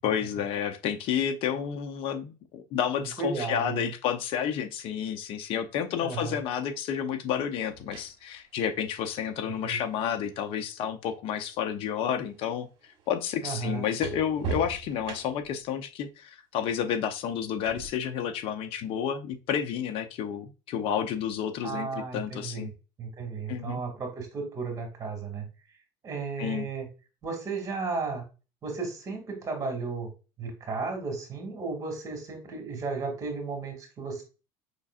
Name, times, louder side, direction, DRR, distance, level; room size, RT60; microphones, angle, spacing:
voice 1, 0.0-22.7 23.5-23.8 26.4-26.7, left 8 dB, 60° left, 7 dB, 0.7 m, -30 dB
voice 2, 3.2-3.9 6.0-6.4 9.6-9.8 13.4-13.9 21.6-22.7 23.0-25.5 26.0-26.9 27.2-28.2 28.6-30.1 30.4-34.2, right 4 dB, 30° right, 4 dB, 2.2 m, -34 dB
sound 1, 7.5-11.6 11.9-15.6 17.7-17.9, right 6 dB, 50° right, 1.2 m, -42 dB
5.4 x 3.6 x 2.4 m, 0.31 s
supercardioid pair, 120°, 11 cm